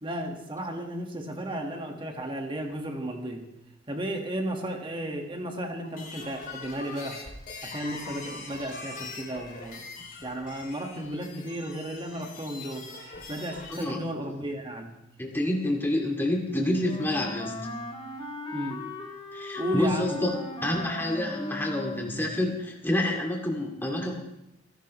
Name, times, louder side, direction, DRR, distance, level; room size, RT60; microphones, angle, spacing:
voice 1, 0.0-3.5 3.9-7.2 7.6-9.9 10.2-12.9 13.3-14.9 18.5-18.8 19.6-20.2, right 1 dB, 25° right, 3 dB, 1.7 m, -34 dB
sound 1, 5.8-13.8, left 3 dB, 45° left, 3.1 m, -42 dB
voice 2, 15.2-17.6 19.3-20.3 20.6-24.2, left 1 dB, 10° left, 0 dB, 2.3 m, -28 dB
Wind instrument woodwind instrument, 16.8-22.3, left 2 dB, 25° left, 2.4 m, -38 dB
28.5 x 11.0 x 3.2 m, 0.85 s
head